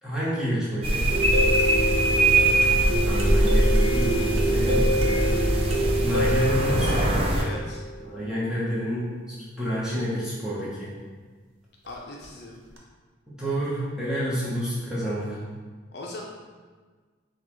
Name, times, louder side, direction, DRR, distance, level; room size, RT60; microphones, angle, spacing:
voice 1, 0.0-1.1 3.1-5.3 6.0-7.0 8.0-9.1 9.5-10.9 13.3-15.4, equal, 5° right, -9 dB, 1.1 m, -29 dB
sound 1, 0.8-7.4, right 1 dB, 30° right, 0.4 m, -22 dB
sound 2, 1.1-8.0 12.2-12.3 12.8-12.9, right 1 dB, 85° right, 0.7 m, -27 dB
voice 2, 7.4-7.8 11.9-12.6 15.9-16.2, left 2 dB, 55° left, -3 dB, 0.6 m, -39 dB
6.3 x 2.4 x 3.1 m, 1.5 s
head